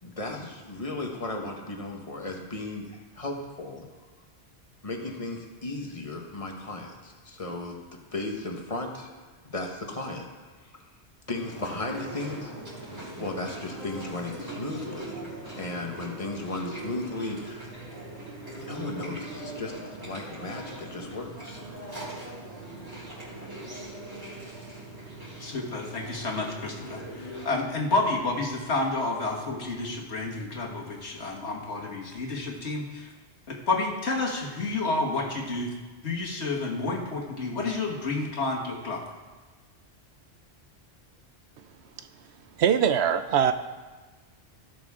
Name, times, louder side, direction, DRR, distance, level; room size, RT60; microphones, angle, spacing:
voice 1, 0.0-3.9 4.8-9.1 9.4-10.7 11.3-12.5 13.2-15.3 15.6-17.8 18.6-21.6, left 2 dB, 30° left, 1 dB, 1.4 m, -35 dB
Chewing mastication, 11.4-27.5, right 2 dB, 20° right, 4.1 m, -41 dB
voice 2, 25.4-33.1 33.5-35.7 36.0-39.0, left 3 dB, 70° left, -1 dB, 1.9 m, -30 dB
voice 3, 42.5-43.5, right 8 dB, 75° right, 10 dB, 0.8 m, -22 dB
17.0 x 6.4 x 3.7 m, 1.3 s
omnidirectional pair, 1.2 m